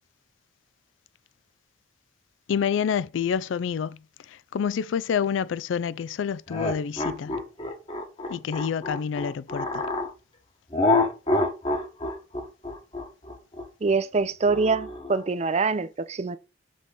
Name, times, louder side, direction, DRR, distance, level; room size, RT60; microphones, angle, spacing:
voice 1, 2.5-4.0 4.5-7.3 8.3-9.8, left 7 dB, 75° left, 0.3 m, -28 dB
sound 1, 6.5-10.1 10.7-15.2, left 2 dB, 30° left, 1.2 m, -27 dB
voice 2, 13.8-16.4, right 4 dB, 35° right, 0.4 m, -24 dB
6.2 x 3.7 x 5.3 m
head